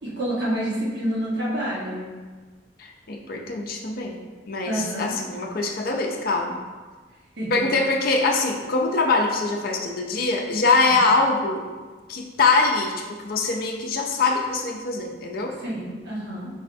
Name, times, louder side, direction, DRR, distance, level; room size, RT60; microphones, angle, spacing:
voice 1, 0.0-2.1 4.6-5.2 7.4-7.8 10.8-10.9 15.6-16.5, right 1 dB, 60° right, -7 dB, 1.3 m, -28 dB
voice 2, 2.8-4.2 4.5-6.6 7.5-11.6 12.1-15.6, left 3 dB, 50° left, 1 dB, 0.4 m, -23 dB
4.7 x 3.2 x 2.6 m, 1.4 s
head